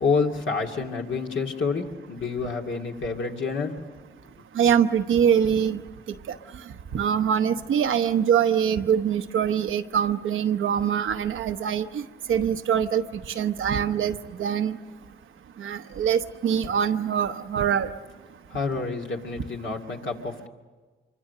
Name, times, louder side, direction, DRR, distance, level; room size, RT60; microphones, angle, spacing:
voice 1, 0.0-3.8 18.5-20.5, left 4 dB, 75° left, 1 dB, 2.4 m, -28 dB
voice 2, 4.5-5.8 6.9-12.0 12.3-13.0 13.4-14.8 15.6-17.9, right 8 dB, 85° right, 8 dB, 0.9 m, -23 dB
25.5 x 24.0 x 6.7 m, 1.3 s
cardioid pair, 55°, 20 cm